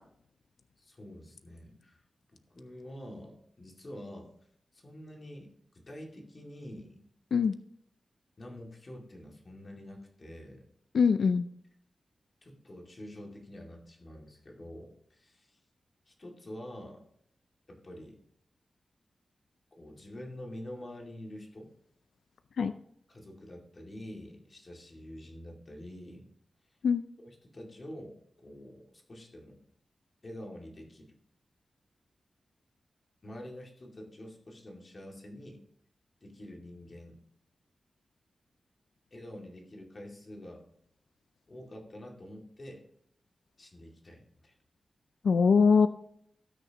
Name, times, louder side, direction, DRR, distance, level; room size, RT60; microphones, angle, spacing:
voice 1, 0.8-2.0 2.3-4.3 4.7-7.0 8.4-10.7 12.4-15.6 16.1-17.0 17.7-18.2 19.7-21.7 23.1-26.3 27.2-29.6 30.2-31.1 33.2-35.6 36.2-37.2 39.1-40.6 41.5-42.8 43.6-44.5, left 1 dB, 35° left, 0 dB, 2.3 m, -47 dB
voice 2, 10.9-11.5 22.6-22.7 26.8-27.0 45.2-45.9, left 5 dB, 80° left, 10 dB, 0.4 m, -22 dB
18.0 x 6.4 x 2.9 m, 0.69 s
wide cardioid pair, 155°, 0 cm